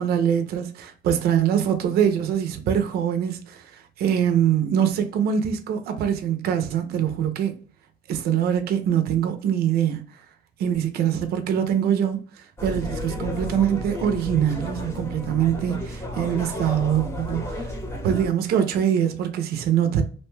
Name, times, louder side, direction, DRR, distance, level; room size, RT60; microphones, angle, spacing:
voice 1, 0.0-7.6 8.1-10.2 10.6-20.0, right 9 dB, 65° right, 0.5 m, -23 dB
sound 1, 12.6-18.3, left 1 dB, 15° left, 0.8 m, -32 dB
2.6 x 2.2 x 3.0 m
cardioid pair, 110°, 17 cm